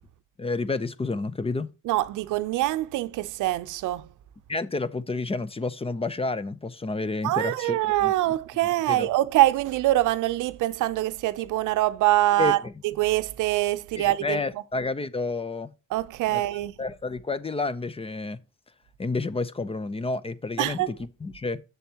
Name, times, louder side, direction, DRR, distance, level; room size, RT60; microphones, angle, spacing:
voice 1, 0.4-1.7 4.5-8.1 8.9-9.1 12.4-12.7 13.9-15.7 16.3-16.4 16.8-18.4 19.0-21.6, left 3 dB, 20° left, 0.6 m, -30 dB
voice 2, 1.8-4.1 7.2-14.4 15.9-16.7 20.6-20.9, right 16 dB, 85° right, 0.6 m, -24 dB
7.0 x 7.0 x 2.9 m
cardioid pair, 90°, 30 cm